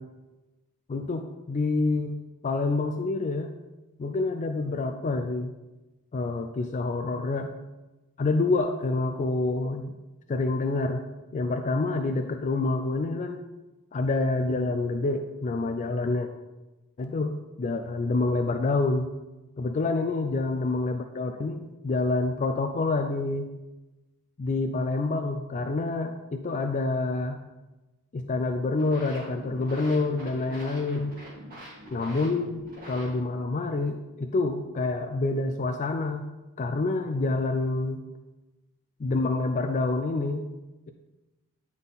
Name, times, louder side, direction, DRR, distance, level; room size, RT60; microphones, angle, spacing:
voice 1, 0.9-3.5 4.0-5.6 6.1-7.5 8.2-9.9 10.3-11.0 11.3-13.4 13.9-16.3 17.0-19.1 19.6-23.5 24.4-27.4 28.1-31.2 31.9-36.3 36.6-38.0 39.0-40.4, left 3 dB, 35° left, 6 dB, 0.3 m, -27 dB
sound 1, 28.6-33.5, equal, 40° right, 2.0 m, -45 dB
9.9 x 3.6 x 4.0 m, 1.1 s
head